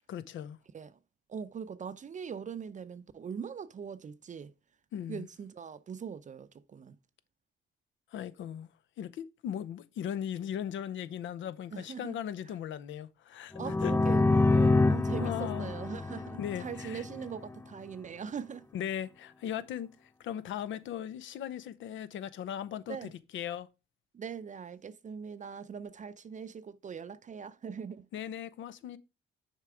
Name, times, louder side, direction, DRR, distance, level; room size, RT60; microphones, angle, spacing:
voice 1, 0.1-0.6 4.9-5.3 8.1-8.7 9.0-13.9 15.2-15.7 16.4-17.0 18.7-23.7 28.1-29.0, left 9 dB, 75° left, 0.7 m, -38 dB
voice 2, 1.3-4.5 5.1-7.0 11.7-12.2 13.6-18.7 22.9-23.1 24.1-28.1, right 7 dB, 40° right, 0.5 m, -41 dB
sound 1, 13.5-17.3, left 3 dB, 10° left, 0.3 m, -27 dB
6.7 x 4.5 x 4.9 m
cardioid pair, 90°, 20 cm